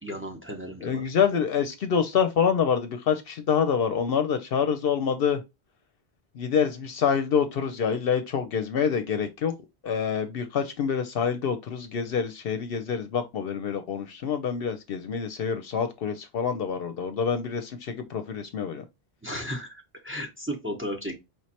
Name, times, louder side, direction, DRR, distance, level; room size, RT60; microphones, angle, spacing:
voice 1, 0.0-1.0 19.2-21.1, equal, 15° right, 0.8 m, -34 dB
voice 2, 0.8-5.4 6.4-9.5 9.8-18.8, left 7 dB, 65° left, 0.8 m, -26 dB
4.7 x 3.1 x 2.8 m
omnidirectional pair, 1.1 m